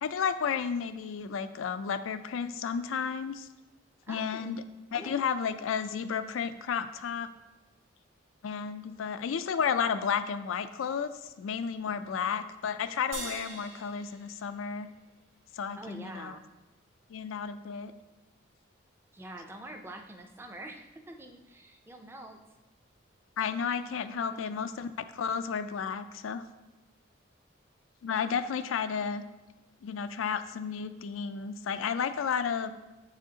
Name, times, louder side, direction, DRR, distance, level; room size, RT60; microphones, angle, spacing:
voice 1, 0.0-3.5 4.1-4.6 4.9-7.3 8.4-11.1 11.4-14.9 15.6-16.3 17.1-17.9 23.4-26.5 28.0-29.3 29.8-32.7, left 6 dB, 85° left, 11 dB, 0.4 m, -32 dB
voice 2, 4.1-4.6 4.9-5.2 11.9-12.2 15.8-16.4 19.1-22.4 24.1-24.7, right 1 dB, 10° right, 5 dB, 0.4 m, -46 dB
sound 1, 13.1-15.7, right 2 dB, 80° right, 1.6 m, -44 dB
7.5 x 5.0 x 2.8 m, 1.1 s
head